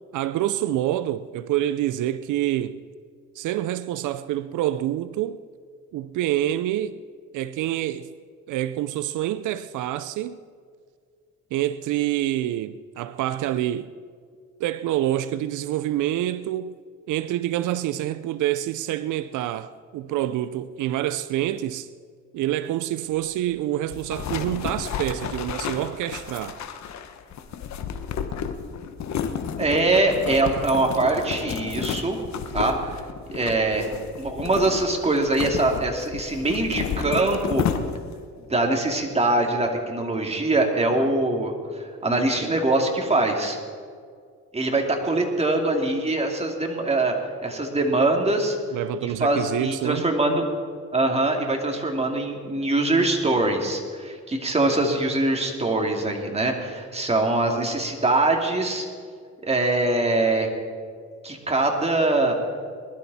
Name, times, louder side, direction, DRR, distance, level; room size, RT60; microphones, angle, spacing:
voice 1, 0.1-2.8 3.4-5.4 5.9-7.0 7.3-8.1 8.5-10.4 11.5-13.9 14.6-16.8 17.1-21.9 22.3-26.6 48.7-50.1, right 13 dB, 80° right, 0.5 m, -27 dB
sound 1, 23.9-38.2, left 7 dB, 65° left, 1.2 m, -32 dB
voice 2, 29.6-32.2 32.5-33.0 33.3-37.6 38.5-43.6 44.5-47.1 47.4-48.6 49.0-50.4 50.9-58.9 59.4-60.5 61.2-62.3, right 2 dB, 20° right, 2.6 m, -23 dB
20.5 x 12.0 x 4.2 m
cardioid pair, 90°, 30 cm